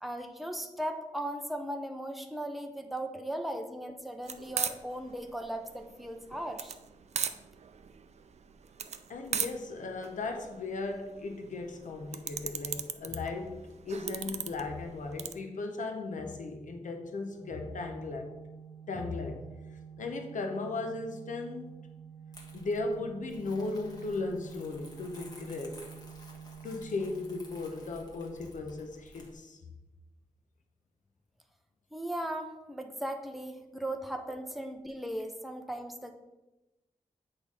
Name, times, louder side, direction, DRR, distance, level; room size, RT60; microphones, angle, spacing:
voice 1, 0.0-6.8 31.9-36.1, right 1 dB, ahead, 4 dB, 0.6 m, -37 dB
sound 1, 4.2-15.3, right 7 dB, 60° right, 0.4 m, -38 dB
voice 2, 9.1-18.3 18.9-19.4 20.0-21.7 22.5-25.8 26.6-29.6, left 3 dB, 85° left, 4 dB, 0.9 m, -36 dB
Organ, 17.4-28.3, right 7 dB, 60° left, 2.0 m, -49 dB
Crumpling crinkling, 22.3-29.3, left 1 dB, 30° left, 1.3 m, -54 dB
8.2 x 3.4 x 5.4 m, 1.0 s
wide cardioid pair, 145°, 13 cm